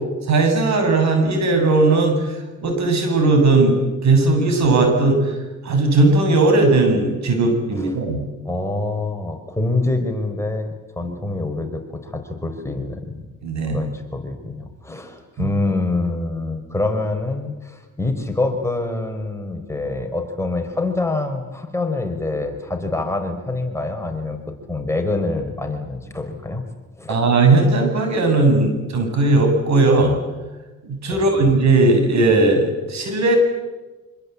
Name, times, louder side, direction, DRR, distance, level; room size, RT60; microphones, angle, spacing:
voice 1, 0.3-2.3 2.6-3.8 4.0-5.2 5.6-8.2 11.0-11.1 13.4-13.8 15.4-15.5 27.1-30.2 30.8-33.4, right 3 dB, 65° right, 5 dB, 7.9 m, -17 dB
voice 2, 8.4-13.1 13.7-24.4 24.7-26.6 27.0-27.1 31.1-31.2, left 2 dB, 10° left, 3 dB, 4.4 m, -25 dB
26.0 x 25.5 x 8.4 m, 1.2 s
cardioid pair, 90°, 30 cm